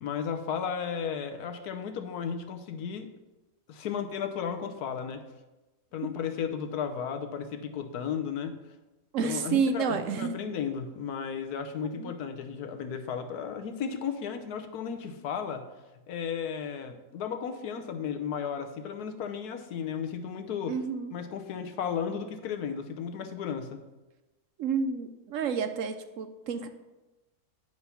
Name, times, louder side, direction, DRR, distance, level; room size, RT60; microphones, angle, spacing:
voice 1, 0.0-3.1 3.7-5.2 5.9-8.5 9.2-15.6 16.1-20.7 21.1-23.8, left 7 dB, 85° left, 7 dB, 1.3 m, -34 dB
voice 2, 9.1-10.4 12.0-12.1 20.7-21.1 24.6-26.7, right 6 dB, 65° right, 9 dB, 0.9 m, -30 dB
9.6 x 4.6 x 5.7 m, 1.1 s
omnidirectional pair, 1.6 m